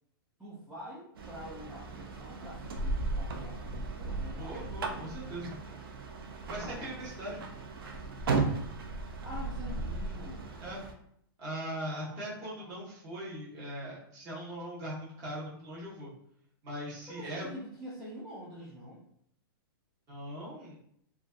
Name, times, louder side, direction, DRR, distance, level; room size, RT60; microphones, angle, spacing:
voice 1, 0.4-5.2 6.5-7.5 9.2-10.6 11.9-12.8 17.1-19.0, equal, 5° right, -9 dB, 0.4 m, -46 dB
Car approach and open door, 1.2-10.9, right 3 dB, 75° right, 0.4 m, -36 dB
voice 2, 4.4-5.6 6.5-7.4 10.6-10.8 11.4-16.1 16.6-17.5 20.1-20.8, right 1 dB, 25° right, -6 dB, 0.9 m, -40 dB
2.4 x 2.2 x 2.3 m, 0.69 s
hypercardioid pair, 150°, 12 cm